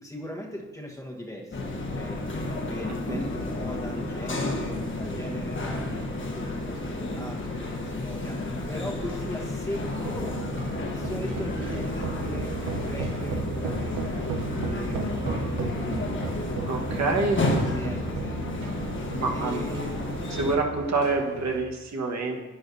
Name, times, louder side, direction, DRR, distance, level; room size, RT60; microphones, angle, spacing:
voice 1, 0.0-2.3 2.7-10.4 10.9-14.3 14.6-16.3 17.3-18.6 19.3-20.1, left 1 dB, 10° left, -1 dB, 1.3 m, -38 dB
sound 1, 1.5-20.5, left 2 dB, 40° left, 1.3 m, -31 dB
sound 2, 9.8-21.6, right 4 dB, 80° right, 0.9 m, -35 dB
voice 2, 16.6-17.9 19.1-19.7 20.4-22.5, right 3 dB, 60° right, 1 dB, 1.5 m, -27 dB
11.0 x 8.5 x 2.7 m, 1.2 s
cardioid pair, 95°, 31 cm